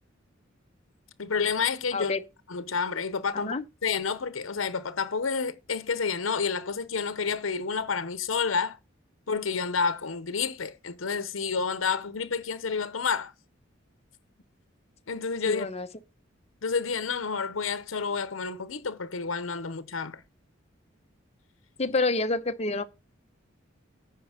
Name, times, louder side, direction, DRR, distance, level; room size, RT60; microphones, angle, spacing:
voice 1, 1.2-2.1 2.5-3.5 3.8-8.8 9.3-13.3 15.1-15.7 16.6-20.2, left 5 dB, 85° left, 0.8 m, -29 dB
voice 2, 1.9-2.2 3.3-3.6 15.5-15.9 21.8-22.8, left 3 dB, 30° left, 0.8 m, -28 dB
9.9 x 5.3 x 5.7 m
head